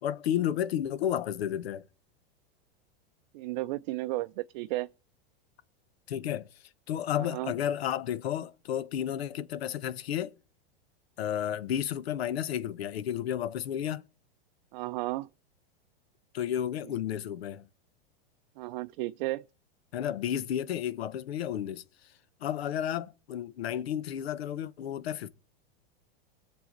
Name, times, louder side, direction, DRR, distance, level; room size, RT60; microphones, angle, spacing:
voice 1, 0.0-1.8 6.1-6.5 6.9-10.3 11.2-14.0 16.3-17.7 19.9-22.1 22.4-25.3, left 10 dB, 85° left, 0.9 m, -32 dB
voice 2, 3.3-4.9 7.3-7.5 14.7-15.3 18.6-19.4, right 18 dB, 50° right, 0.5 m, -33 dB
20.5 x 6.9 x 3.9 m
supercardioid pair, 140°, 30 cm